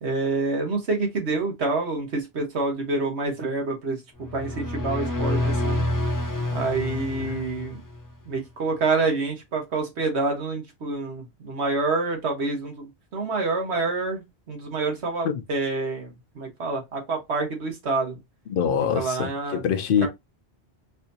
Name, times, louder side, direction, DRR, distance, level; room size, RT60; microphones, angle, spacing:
voice 1, 0.0-4.0 4.3-5.8 6.5-7.8 8.3-18.2 18.9-19.6, right 3 dB, 85° right, 1.5 m, -27 dB
sound 1, 4.2-8.1, left 1 dB, 20° left, 0.6 m, -27 dB
voice 2, 18.5-20.1, left 7 dB, 60° left, 0.8 m, -24 dB
4.1 x 2.7 x 2.6 m
omnidirectional pair, 1.1 m